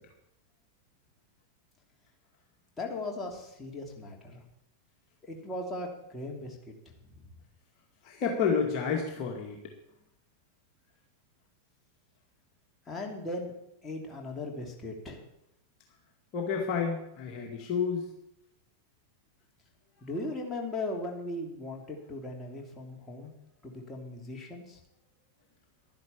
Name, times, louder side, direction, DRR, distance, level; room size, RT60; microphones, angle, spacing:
voice 1, 2.8-4.4 5.2-6.8 7.1-7.2 12.9-13.5 13.8-15.2 20.0-23.3 23.6-24.8, left 2 dB, 15° left, 0 dB, 3.1 m, -38 dB
voice 2, 8.0-9.6 16.3-18.1, left 6 dB, 40° left, 1 dB, 2.2 m, -30 dB
11.5 x 10.5 x 7.2 m, 0.82 s
figure-of-eight pair, 90°, 0 cm